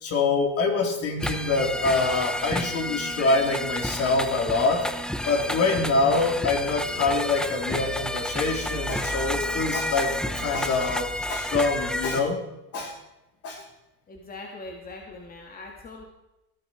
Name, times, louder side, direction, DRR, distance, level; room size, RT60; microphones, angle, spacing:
voice 1, 0.0-4.9 5.3-12.4 12.7-13.0 13.4-13.6, left 3 dB, 45° left, 3 dB, 3.6 m, -25 dB
sound 1, 1.2-12.2, left 1 dB, ahead, 0.9 m, -30 dB
voice 2, 14.1-16.0, left 2 dB, 25° left, 2 dB, 2.1 m, -41 dB
18.0 x 12.0 x 4.6 m, 0.95 s
supercardioid pair, 110°, 33 cm